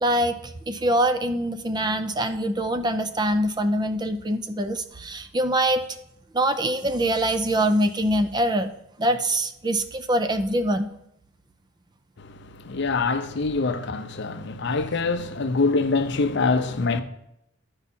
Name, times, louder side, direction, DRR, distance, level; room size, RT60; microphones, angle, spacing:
voice 1, 0.0-5.9 6.3-8.7 9.0-10.9, right 1 dB, 20° right, 0.5 m, -24 dB
voice 2, 12.2-17.0, left 3 dB, 60° left, 0.6 m, -25 dB
12.0 x 4.8 x 4.2 m
head